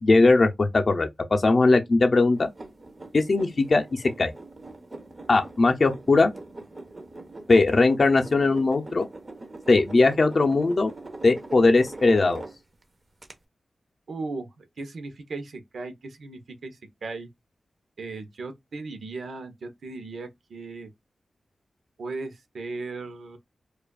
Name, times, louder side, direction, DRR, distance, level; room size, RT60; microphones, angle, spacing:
voice 1, 0.0-2.5 3.1-4.3 5.3-6.3 7.5-9.1 9.7-10.9 11.2-12.4, left 3 dB, 45° left, 0.6 m, -20 dB
sound 1, 2.3-12.8 13.2-13.3, right 2 dB, 35° right, 0.8 m, -42 dB
voice 2, 14.1-17.3 18.0-20.9 22.0-23.4, right 3 dB, 75° right, 0.8 m, -37 dB
4.8 x 2.4 x 2.3 m
wide cardioid pair, 85°, 0 cm